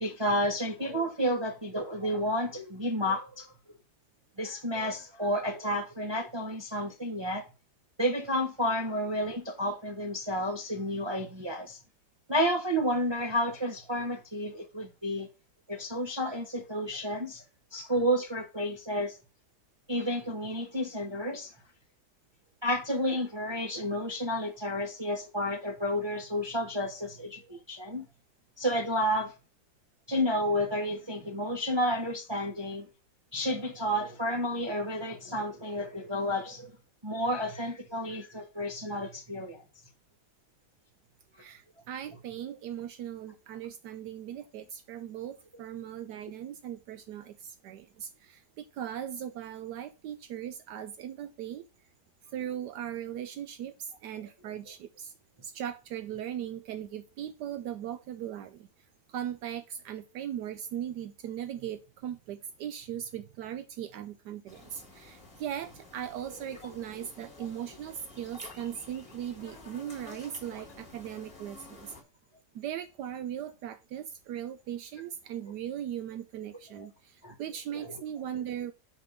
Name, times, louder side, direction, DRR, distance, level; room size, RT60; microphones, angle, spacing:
voice 1, 0.0-3.5 4.4-7.4 8.0-11.8 12.3-15.3 15.7-17.4 17.7-19.2 19.9-21.5 22.6-28.0 28.6-29.3 30.1-32.9 33.3-36.7 37.0-39.6 42.1-42.2 66.3-66.7 76.8-76.9 77.2-77.3 77.7-78.0, equal, 40° right, 0.4 m, -31 dB
voice 2, 41.3-51.6 52.2-55.1 55.4-58.7 59.1-71.9 72.5-78.7, right 10 dB, 80° right, 1.1 m, -39 dB
sound 1, 64.5-72.0, left 3 dB, 20° left, 1.3 m, -51 dB
5.4 x 5.1 x 5.2 m
omnidirectional pair, 1.8 m